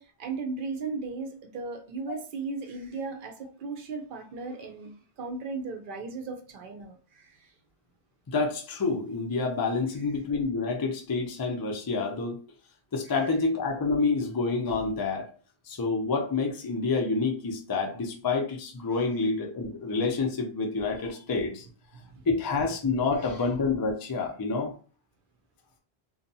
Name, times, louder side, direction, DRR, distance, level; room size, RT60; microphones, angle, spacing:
voice 1, 0.0-4.9 5.2-7.5 22.0-22.2, right 4 dB, 60° right, 4 dB, 0.6 m, -36 dB
voice 2, 8.3-12.4 12.9-15.3 15.7-21.7 22.3-24.7, left 4 dB, 35° left, 1 dB, 0.3 m, -28 dB
2.7 x 2.2 x 2.6 m, 0.39 s
omnidirectional pair, 1.1 m